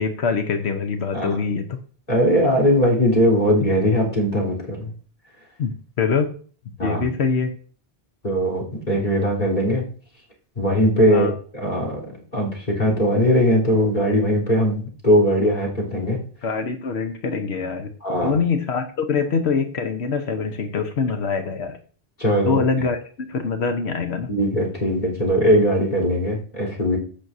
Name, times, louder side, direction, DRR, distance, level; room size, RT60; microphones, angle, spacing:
voice 1, 0.0-1.7 5.6-6.3 6.8-7.5 11.1-11.3 16.4-21.8 22.5-24.3, left 5 dB, 85° left, 7 dB, 1.2 m, -24 dB
voice 2, 2.1-4.9 6.8-7.1 8.2-9.8 10.6-12.0 12.3-16.2 18.0-18.4 22.2-22.6 24.3-27.0, equal, 45° left, -2 dB, 3.8 m, -20 dB
15.5 x 6.2 x 2.7 m, 0.42 s
omnidirectional pair, 1.1 m